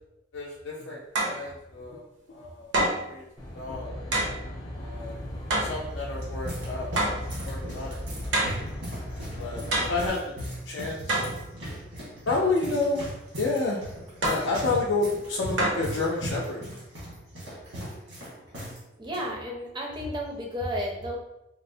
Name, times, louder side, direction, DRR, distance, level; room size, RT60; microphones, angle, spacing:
voice 1, 0.3-2.7 3.1-3.2 3.5-3.9 4.8-5.1 5.6-6.9 7.4-8.0 8.3-8.4 9.4-10.3 10.7-11.2 12.3-13.0 13.3-13.8 14.2-16.6, left 3 dB, 75° left, -3 dB, 0.4 m, -30 dB
sound 1, 1.2-1.4 2.7-3.1 4.1-4.4 5.5-5.8 7.0-7.3 8.3-8.6 9.7-10.1 11.1-11.4 14.2-14.5 15.6-15.9, right 1 dB, 70° right, 0.7 m, -26 dB
Aircraft, 3.4-10.1, left 1 dB, 20° left, 0.6 m, -37 dB
sound 2, 5.9-18.8 19.0-19.2 19.9-20.2, equal, 85° right, 1.4 m, -38 dB
voice 2, 19.0-21.2, equal, 25° right, -1 dB, 0.5 m, -32 dB
4.1 x 2.0 x 2.6 m, 0.91 s
head